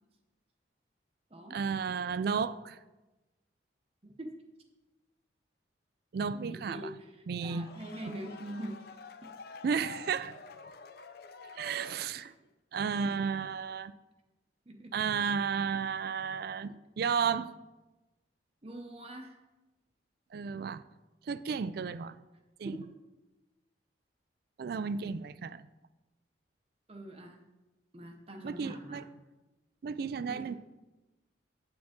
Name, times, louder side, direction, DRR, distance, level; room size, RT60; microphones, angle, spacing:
voice 1, 1.5-2.8 6.1-6.9 7.3-7.7 9.6-10.4 11.6-12.3 12.7-13.9 14.9-17.5 20.3-20.8 21.3-22.2 22.6-22.8 24.6-25.7 28.4-29.0 29.8-30.5, right 6 dB, 55° right, 0.3 m, -33 dB
voice 2, 4.0-4.4 6.5-8.8 9.2-9.3 14.7-14.9 18.6-19.4 22.6-22.8 26.9-27.4 27.9-29.0 30.3-30.5, right 1 dB, 30° right, 0.7 m, -43 dB
sound 1, 7.4-12.5, left 4 dB, 55° left, 0.4 m, -49 dB
8.7 x 7.4 x 3.6 m
head